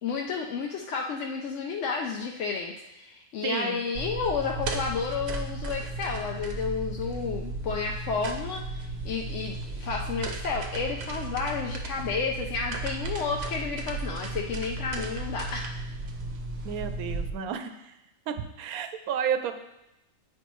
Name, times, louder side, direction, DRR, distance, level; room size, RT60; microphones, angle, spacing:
voice 1, 0.0-15.7, left 5 dB, 65° left, 1 dB, 0.8 m, -31 dB
voice 2, 3.4-3.8 16.6-17.9 18.3-19.6, right 7 dB, 90° right, 8 dB, 1.1 m, -31 dB
sound 1, 3.9-17.3, right 2 dB, 55° right, 0.8 m, -35 dB
8.5 x 5.2 x 3.1 m, 0.89 s
omnidirectional pair, 1.5 m